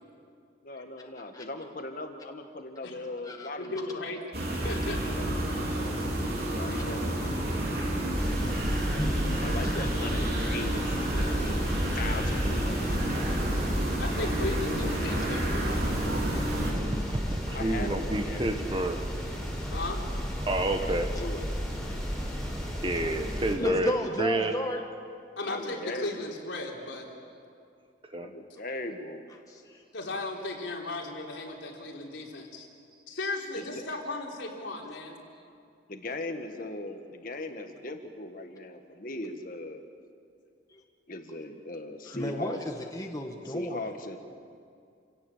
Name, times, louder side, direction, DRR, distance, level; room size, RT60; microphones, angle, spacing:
voice 1, 0.6-3.8 5.0-5.3 6.5-7.2 9.4-12.9 17.5-19.6 20.8-22.0 23.0-24.0 25.4-26.3 28.1-29.2 33.6-33.8 35.9-39.8 41.1-42.6 43.4-44.2, left 2 dB, 45° left, 5 dB, 1.8 m, -39 dB
voice 2, 3.6-5.2 14.0-15.7 19.7-20.0 25.4-27.1 29.9-32.7 33.1-35.2, left 2 dB, 80° left, -1 dB, 3.7 m, -36 dB
sound 1, 4.3-16.7, right 1 dB, 55° right, 4.2 m, -30 dB
sound 2, 8.2-23.5, equal, 5° left, 3.7 m, -33 dB
voice 3, 9.0-9.4 9.6-9.7 12.8-13.0 22.7-22.8 23.6-24.8 29.5-29.8 40.7-40.8 42.1-43.9, left 1 dB, 20° left, 2 dB, 1.6 m, -34 dB
voice 4, 16.7-19.0 20.5-21.1 22.8-24.6 28.1-28.3, right 1 dB, 25° right, 6 dB, 1.3 m, -29 dB
28.5 x 17.5 x 7.4 m, 2.4 s
head